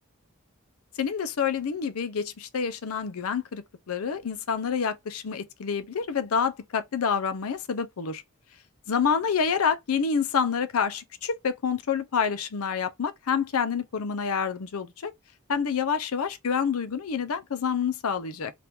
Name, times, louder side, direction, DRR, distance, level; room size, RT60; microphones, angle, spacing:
voice 1, 1.0-8.2 8.9-15.1 15.5-18.5, left 6 dB, 80° left, 0.5 m, -28 dB
3.0 x 2.4 x 3.4 m
head